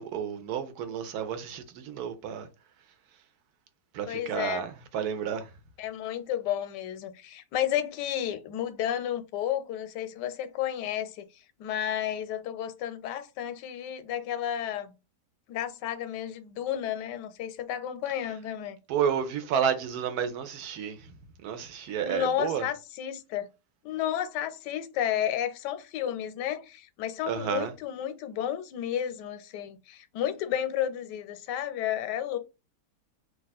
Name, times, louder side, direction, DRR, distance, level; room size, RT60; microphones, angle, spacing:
voice 1, 0.0-2.5 3.9-5.5 18.9-21.1 21.4-22.7 27.3-27.7, right 8 dB, 70° right, 1.1 m, -31 dB
voice 2, 4.1-4.6 5.8-11.2 11.6-14.9 15.5-18.8 21.8-23.5 23.8-32.4, left 10 dB, 85° left, 1.2 m, -32 dB
2.8 x 2.4 x 4.0 m
omnidirectional pair, 1.8 m